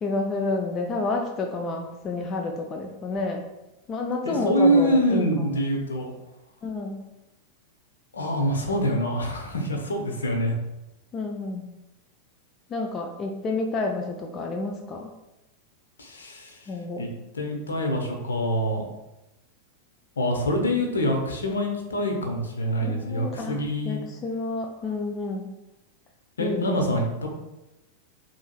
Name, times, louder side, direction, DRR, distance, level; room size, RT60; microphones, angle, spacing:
voice 1, 0.0-3.4 3.9-5.5 6.6-7.1 11.1-11.7 12.7-15.1 16.7-17.1 22.8-25.5 26.4-26.8, left 3 dB, 25° left, 2 dB, 0.5 m, -30 dB
voice 2, 4.2-6.1 8.1-10.6 16.0-16.6 17.0-17.1 17.3-18.8 20.2-24.0 26.4-27.3, equal, 70° left, 2 dB, 0.9 m, -25 dB
7.0 x 3.0 x 2.3 m, 0.94 s
figure-of-eight pair, 90°, 0 cm